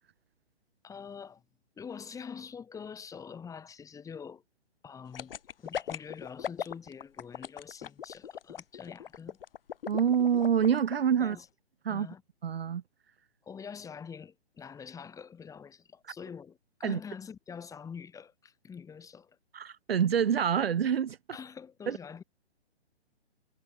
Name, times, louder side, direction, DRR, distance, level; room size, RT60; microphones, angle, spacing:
voice 1, 0.8-1.4 1.8-4.4 4.8-5.3 5.6-9.4 11.2-11.5 11.9-12.2 13.4-19.4 21.3-22.2, left 6 dB, 10° left, 4.5 m, -45 dB
sound 1, 5.1-10.9 11.3-11.4, left 9 dB, 60° left, 0.9 m, -38 dB
voice 2, 9.9-11.4 11.8-12.1 12.4-12.8 16.8-17.0 19.5-21.2 21.9-22.0, right 8 dB, 65° right, 1.1 m, -26 dB
figure-of-eight pair, 135°, 33 cm